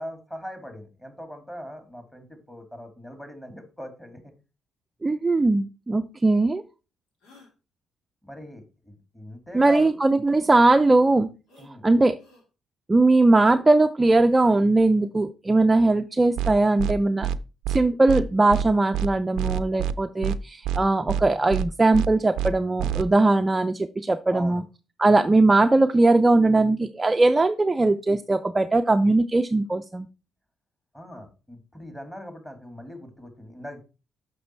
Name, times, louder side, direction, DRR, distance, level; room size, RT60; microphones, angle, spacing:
voice 1, 0.0-4.3 8.2-9.9 11.6-11.8 24.3-24.6 30.9-33.8, equal, 10° left, 6 dB, 2.5 m, -40 dB
voice 2, 5.0-6.6 9.5-11.3 11.8-12.2 12.9-17.3 17.7-24.6 25.0-30.1, right 2 dB, 20° right, 6 dB, 0.5 m, -20 dB
sound 1, 6.2-6.3 7.2-7.5 9.5-9.9 11.5-11.7 12.2-12.4 14.3-14.7, left 2 dB, 85° left, 2.7 m, -50 dB
sound 2, 16.4-16.5 16.8-16.9 17.2-17.4 17.6-17.8 18.1-18.2 18.5-18.7 18.9-19.1 19.4-19.9 20.2-20.4 20.6-20.8 21.1-21.2 21.5-21.7 21.9-22.1 22.4-22.5 22.8-23.0, right 9 dB, 90° right, 0.5 m, -26 dB
6.5 x 6.0 x 4.5 m, 0.31 s
cardioid pair, 90°, 0 cm